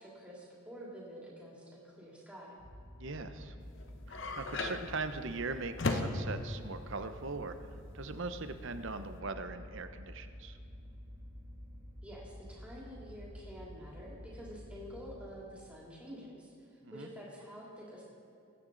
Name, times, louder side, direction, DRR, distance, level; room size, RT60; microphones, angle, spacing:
voice 1, 0.0-2.6 12.0-18.0, equal, 5° right, -5 dB, 3.0 m, -49 dB
sound 1, 2.6-15.2, equal, 30° right, 3.1 m, -50 dB
voice 2, 3.0-3.5 4.1-7.6 7.9-10.6 16.8-17.1, right 3 dB, 55° right, 9 dB, 0.7 m, -40 dB
sound 2, 3.6-9.2, left 2 dB, 55° left, 1.0 m, -38 dB
20.5 x 9.6 x 3.9 m, 2.7 s
head